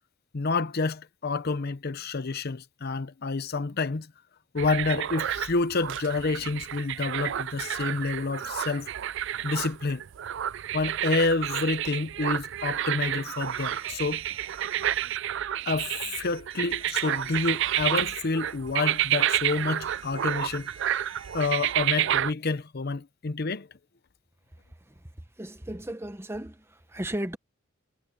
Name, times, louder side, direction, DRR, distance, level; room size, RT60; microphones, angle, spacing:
voice 1, 0.3-4.1 4.5-8.9 9.4-10.0 10.7-14.2 15.7-20.7 21.3-23.7, left 3 dB, 50° left, 0.7 m, -28 dB
sound 1, 4.6-22.3, right 11 dB, 60° right, 0.4 m, -30 dB
sound 2, 13.3-15.2 16.2-21.8, right 5 dB, 30° right, 4.0 m, -50 dB
voice 2, 25.4-27.4, right 1 dB, 10° right, 1.0 m, -35 dB
head